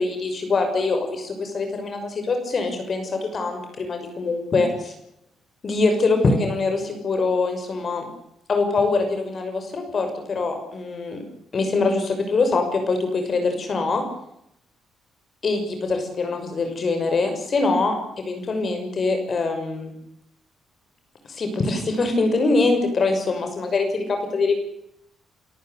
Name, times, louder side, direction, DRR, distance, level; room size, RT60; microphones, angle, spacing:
voice 1, 0.0-4.9 5.6-8.1 8.5-11.2 11.5-14.0 15.4-19.9 21.3-24.5, left 3 dB, 45° left, 6 dB, 6.1 m, -23 dB
29.5 x 14.0 x 8.1 m, 0.78 s
cardioid pair, 90°, 0 cm